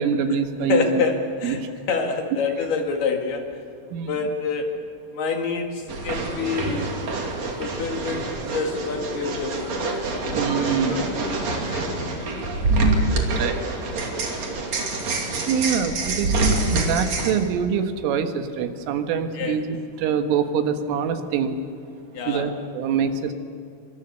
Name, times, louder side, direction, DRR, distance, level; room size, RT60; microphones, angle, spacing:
voice 1, 0.0-1.0 1.4-1.7 3.9-4.2 10.3-11.1 13.2-13.6 15.3-16.4 16.7-21.6 22.3-23.3, right 7 dB, 85° right, 7 dB, 4.1 m, -25 dB
voice 2, 0.7-1.6 1.9-3.6 4.1-4.8 5.1-7.0 7.6-12.5 19.3-19.6 22.1-22.5, left 5 dB, 60° left, 3 dB, 3.7 m, -28 dB
sound 1, 5.9-17.3, right 2 dB, 40° right, 3.3 m, -26 dB
26.5 x 24.0 x 6.8 m, 2.6 s
omnidirectional pair, 5.6 m